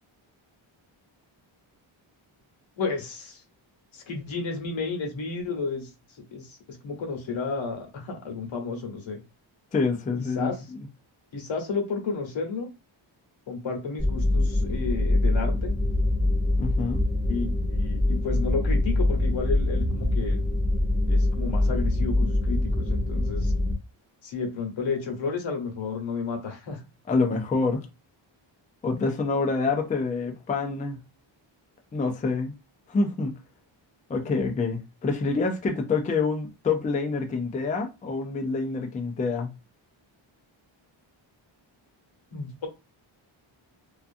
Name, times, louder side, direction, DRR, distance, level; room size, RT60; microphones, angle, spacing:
voice 1, 2.8-3.4 3.9-5.9 6.3-9.2 10.2-10.6 11.3-12.7 13.5-15.7 17.3-17.4 17.7-20.4 21.1-23.5 24.2-26.8 42.3-42.7, left 4 dB, 70° left, 1.0 m, -32 dB
voice 2, 9.7-10.5 16.6-17.0 27.1-27.9 28.8-31.0 31.9-32.5 32.9-33.4 34.1-39.5, left 4 dB, 20° left, 0.3 m, -26 dB
sound 1, 14.0-23.7, left 1 dB, ahead, 0.9 m, -24 dB
2.4 x 2.4 x 2.5 m
wide cardioid pair, 115°, 48 cm